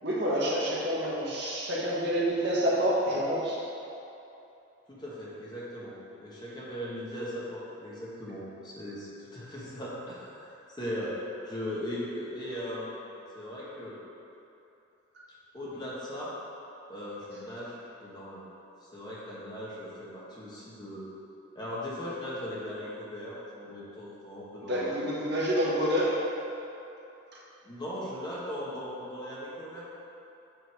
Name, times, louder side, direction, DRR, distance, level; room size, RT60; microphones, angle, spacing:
voice 1, 0.0-3.6 24.6-26.1, equal, 60° right, -6 dB, 1.5 m, -28 dB
voice 2, 4.9-11.1 11.4-12.9 13.3-14.0 15.5-16.3 16.9-18.5 18.8-21.0 21.5-24.8 25.3-25.5 27.6-29.9, equal, 20° left, -7 dB, 1.2 m, -38 dB
7.7 x 3.9 x 4.7 m, 2.9 s
head